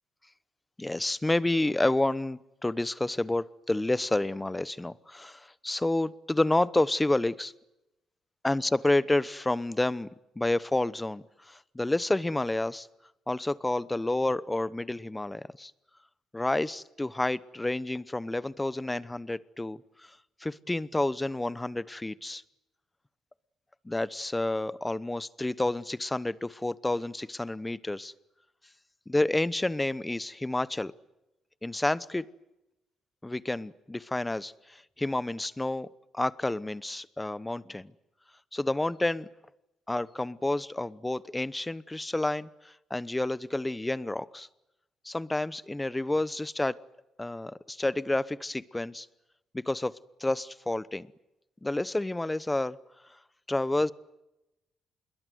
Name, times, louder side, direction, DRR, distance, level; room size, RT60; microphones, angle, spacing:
voice 1, 0.8-7.5 8.4-10.1 10.4-12.9 13.3-15.7 16.3-22.4 23.8-28.1 29.1-30.9 31.6-32.2 33.2-35.9 36.1-37.9 38.5-39.3 39.9-44.5 45.0-46.8 47.2-49.1 49.5-49.9 50.2-51.1 51.6-52.8 53.5-53.9, left 2 dB, 15° left, 18 dB, 0.9 m, -29 dB
26.5 x 21.5 x 9.4 m, 0.92 s
cardioid pair, 90°, 0 cm